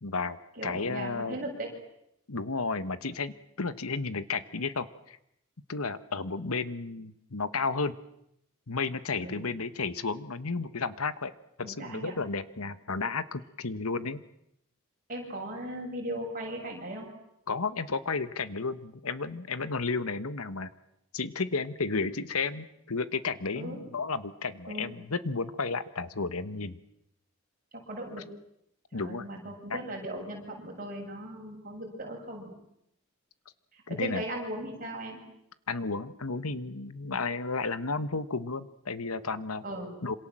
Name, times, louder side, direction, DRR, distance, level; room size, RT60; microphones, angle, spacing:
voice 1, 0.0-0.4 0.6-1.4 2.3-5.2 5.7-7.9 8.7-11.3 11.6-14.2 17.5-20.7 21.1-26.8 28.9-29.2 29.7-29.8 33.9-34.2 35.7-39.6 40.0-40.1, left 4 dB, 80° left, 14 dB, 1.3 m, -32 dB
voice 2, 0.6-1.7 9.2-9.5 11.6-12.2 15.1-17.1 23.5-23.8 24.7-24.9 27.7-28.2 28.9-32.6 33.7-35.3 37.0-37.2 39.6-39.9, right 1 dB, 40° right, 0 dB, 7.5 m, -38 dB
27.0 x 27.0 x 7.6 m, 0.78 s
head